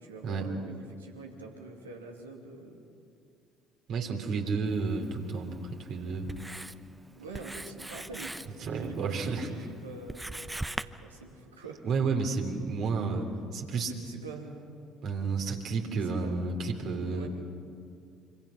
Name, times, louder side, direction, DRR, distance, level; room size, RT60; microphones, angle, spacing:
voice 1, 0.0-2.8 7.1-11.8 12.9-13.1 13.8-14.9 16.0-16.4 17.1-17.3, right 3 dB, 90° right, 1 dB, 2.6 m, -45 dB
voice 2, 3.9-6.3 8.6-9.5 11.8-13.3 13.5-13.9 15.0-17.3, right 4 dB, 60° right, 2 dB, 3.4 m, -31 dB
Writing, 4.7-10.8, right 2 dB, 10° right, 0.9 m, -42 dB
26.5 x 25.5 x 5.9 m, 2.3 s
hypercardioid pair, 55°, 0 cm